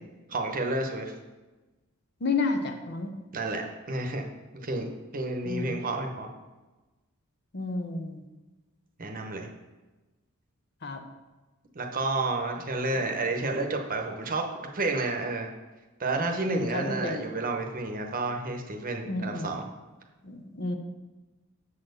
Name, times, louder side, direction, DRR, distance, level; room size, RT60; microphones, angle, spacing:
voice 1, 0.3-1.1 3.3-4.3 4.5-6.3 9.0-9.5 11.7-15.5 16.0-19.6, right 2 dB, 40° right, 3 dB, 0.9 m, -30 dB
voice 2, 2.2-3.1 5.4-5.7 7.5-8.2 10.8-11.0 16.4-17.3 19.1-19.5 20.2-20.8, left 3 dB, 50° left, 4 dB, 0.9 m, -31 dB
7.4 x 4.3 x 6.6 m, 1.2 s
head